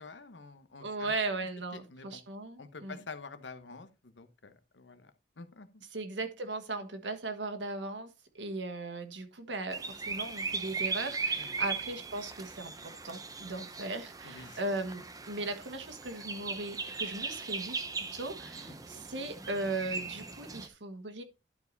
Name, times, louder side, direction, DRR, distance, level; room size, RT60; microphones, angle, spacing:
voice 1, 0.0-1.1 1.7-2.2 2.6-5.1 5.4-5.7 11.3-11.6 14.2-14.6, left 4 dB, 90° left, 1.0 m, -48 dB
voice 2, 0.8-3.0 5.9-8.1 8.3-17.8 18.1-21.2, right 2 dB, 90° right, 1.5 m, -38 dB
sound 1, 9.7-20.7, right 4 dB, 20° right, 0.7 m, -38 dB
11.5 x 4.8 x 4.0 m
head